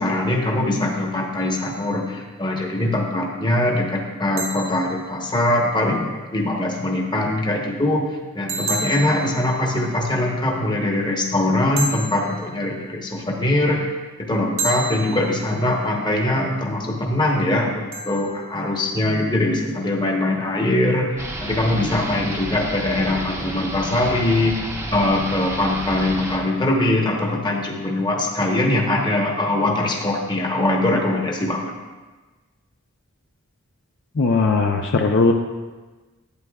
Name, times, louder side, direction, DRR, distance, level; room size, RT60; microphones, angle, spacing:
voice 1, 0.0-8.1 8.3-13.9 14.2-24.6 24.9-31.8, left 1 dB, 20° left, 0 dB, 1.0 m, -22 dB
sound 1, 1.4-2.2 4.4-5.8 8.5-10.3 11.8-13.1 14.6-16.0 17.9-19.1, right 3 dB, 65° right, 1.1 m, -32 dB
sound 2, 21.2-26.4, right 1 dB, 15° right, 0.8 m, -31 dB
voice 2, 34.2-35.3, left 3 dB, 55° left, 3 dB, 0.5 m, -18 dB
11.5 x 9.1 x 2.3 m, 1.2 s
head